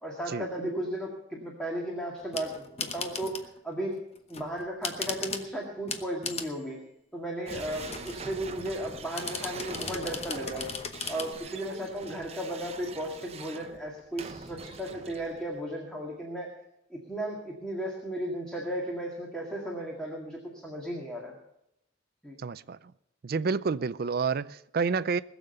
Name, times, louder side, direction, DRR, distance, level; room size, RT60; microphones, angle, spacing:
voice 1, 0.0-4.0 4.3-6.8 7.1-10.7 11.1-16.5 16.9-21.4 22.2-22.4, right 1 dB, 5° left, 2.0 m, -35 dB
sound 1, 2.2-3.6 4.1-5.5 5.9-6.6 7.5-8.3 9.1-11.3, left 5 dB, 30° left, 1.0 m, -37 dB
sound 2, 7.5-15.6, right 4 dB, 30° right, 0.8 m, -43 dB
voice 2, 22.4-22.8 23.2-25.2, right 5 dB, 50° right, 0.4 m, -29 dB
20.5 x 7.2 x 6.6 m
head